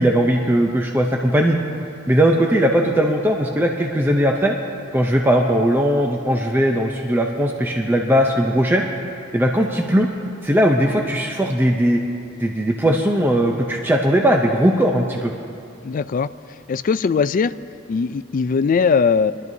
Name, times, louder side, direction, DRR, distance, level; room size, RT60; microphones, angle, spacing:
voice 1, 0.0-1.6 2.1-4.6 4.9-8.8 9.3-10.1 10.4-12.0 12.4-15.3, equal, 10° right, 1 dB, 0.6 m, -18 dB
voice 2, 15.8-16.3 16.7-17.5 17.9-19.3, left 5 dB, 40° left, 14 dB, 0.3 m, -19 dB
24.0 x 12.0 x 2.7 m, 2.6 s
head